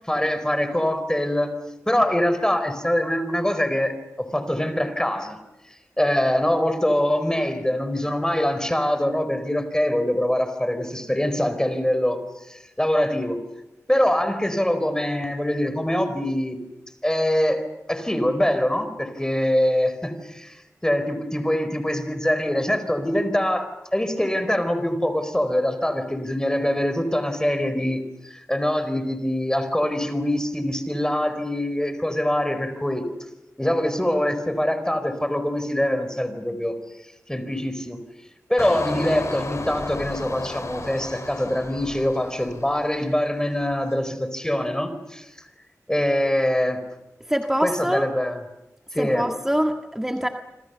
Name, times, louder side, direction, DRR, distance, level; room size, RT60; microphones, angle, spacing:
voice 1, 0.1-1.5 1.9-5.4 6.0-12.2 12.5-13.4 13.9-16.6 17.0-17.6 17.9-28.0 28.3-33.0 33.6-36.7 37.3-38.0 38.5-45.3 45.9-46.8 47.6-48.4 48.9-49.3, left 1 dB, 10° left, 10 dB, 4.3 m, -24 dB
Engine, 38.6-43.2 43.6-44.0, left 2 dB, 60° left, 4.3 m, -34 dB
voice 2, 47.3-48.1 49.0-50.3, equal, 5° right, 4 dB, 1.8 m, -24 dB
27.0 x 26.5 x 6.9 m, 0.92 s
cardioid pair, 50°, 6 cm